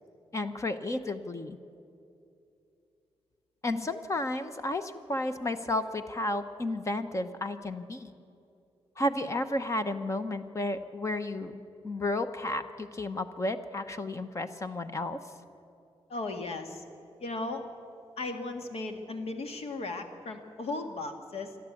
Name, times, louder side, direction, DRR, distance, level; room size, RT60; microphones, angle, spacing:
voice 1, 0.3-1.6 3.6-8.1 9.0-15.2 17.4-17.5, left 1 dB, 30° left, 9 dB, 1.0 m, -32 dB
voice 2, 16.1-16.8 17.2-17.6 18.2-21.6, left 2 dB, 80° left, 5 dB, 2.0 m, -36 dB
28.0 x 12.0 x 8.5 m, 2.6 s
wide cardioid pair, 140°, 10 cm